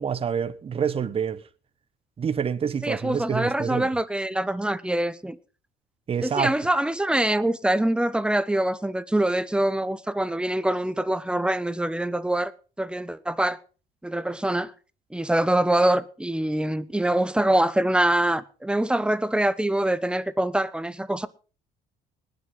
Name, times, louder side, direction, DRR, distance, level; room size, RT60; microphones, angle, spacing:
voice 1, 0.0-1.4 2.2-3.9 6.1-6.5, right 7 dB, 35° right, 1.0 m, -27 dB
voice 2, 2.8-5.4 6.2-12.5 12.8-13.6 14.0-14.7 15.1-21.3, right 1 dB, 5° right, 0.9 m, -24 dB
20.0 x 7.9 x 5.5 m
cardioid pair, 110°, 17 cm